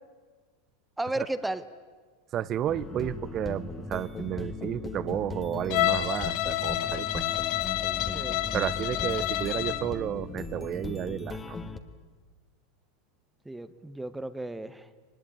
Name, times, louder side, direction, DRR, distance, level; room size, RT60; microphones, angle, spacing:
voice 1, 1.0-1.6 8.1-8.4 13.4-14.9, right 2 dB, 5° right, 13 dB, 1.1 m, -34 dB
voice 2, 2.3-7.2 8.5-11.6, right 11 dB, 35° right, 17 dB, 0.7 m, -32 dB
sound 1, 2.7-11.8, left 3 dB, 15° left, 1.5 m, -38 dB
Bowed string instrument, 5.7-9.9, left 14 dB, 55° left, 1.4 m, -29 dB
23.5 x 20.5 x 9.1 m, 1.5 s
supercardioid pair, 125°, 0 cm